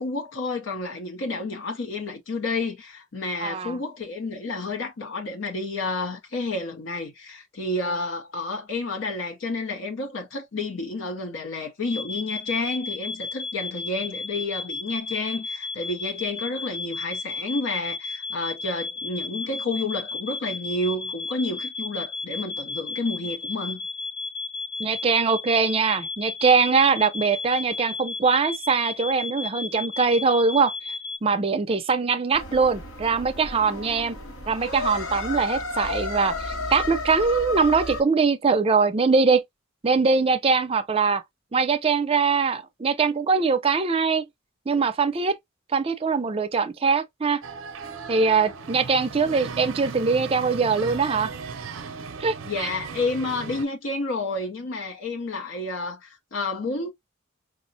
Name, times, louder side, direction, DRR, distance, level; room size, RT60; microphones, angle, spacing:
voice 1, 0.0-23.9 52.4-56.9, left 2 dB, 65° left, 0.6 m, -30 dB
voice 2, 3.4-3.8 24.8-30.7 31.2-34.2 34.5-39.4 39.8-41.2 41.5-44.2 44.7-45.4 45.7-47.4 48.1-51.3 52.2-52.7, right 5 dB, 30° right, 0.4 m, -22 dB
sound 1, 11.9-31.2, left 3 dB, 30° left, 0.6 m, -34 dB
sound 2, 32.3-38.0, left 3 dB, 85° left, 1.0 m, -32 dB
sound 3, 47.4-53.6, right 5 dB, 80° right, 0.5 m, -37 dB
4.8 x 2.1 x 2.6 m
head